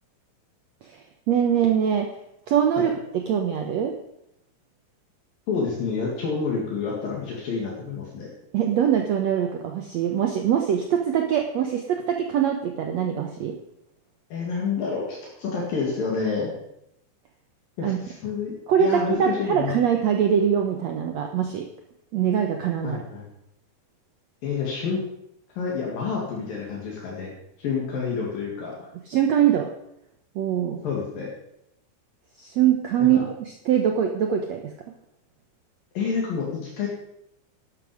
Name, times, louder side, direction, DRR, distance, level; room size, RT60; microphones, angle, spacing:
voice 1, 0.8-2.1 2.5-3.9 8.5-13.6 17.8-18.0 18.7-21.7 22.1-23.0 29.1-29.7 30.3-30.8 32.4-34.7, right 9 dB, 85° right, 3 dB, 1.5 m, -23 dB
voice 2, 5.5-8.3 14.3-16.5 17.8-18.5 18.8-19.7 22.8-23.2 24.4-25.0 25.6-27.3 27.6-28.9 30.8-31.3 33.0-33.2 36.0-36.9, left 5 dB, 65° left, -3 dB, 3.9 m, -28 dB
12.0 x 11.5 x 5.0 m, 0.78 s
omnidirectional pair, 4.5 m